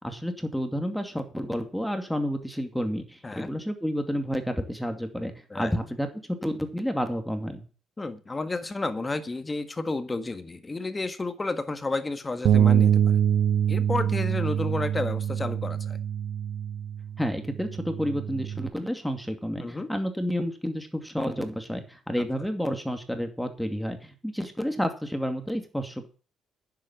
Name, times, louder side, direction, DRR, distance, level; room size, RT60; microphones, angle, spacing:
voice 1, 0.0-7.6 17.2-26.1, equal, ahead, 6 dB, 2.4 m, -30 dB
voice 2, 8.0-13.2 13.7-16.0 19.6-19.9, left 3 dB, 25° left, 9 dB, 1.6 m, -31 dB
Bass guitar, 12.4-18.7, right 9 dB, 70° right, 0.5 m, -25 dB
10.0 x 7.7 x 7.2 m, 0.37 s
cardioid pair, 90°, 0 cm